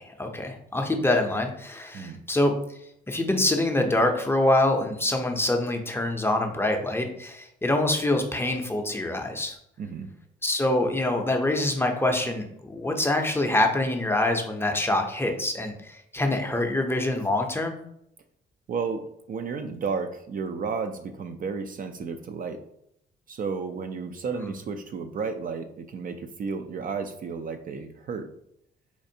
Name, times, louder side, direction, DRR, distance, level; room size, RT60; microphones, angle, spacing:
voice 1, 0.0-2.5 3.1-9.6 10.4-17.8 24.4-24.5, left 1 dB, 10° left, 3 dB, 0.5 m, -25 dB
voice 2, 9.8-10.1 18.7-22.6 23.3-28.3, right 5 dB, 45° right, 7 dB, 0.4 m, -32 dB
4.3 x 2.4 x 2.7 m, 0.74 s
cardioid pair, 90°, 20 cm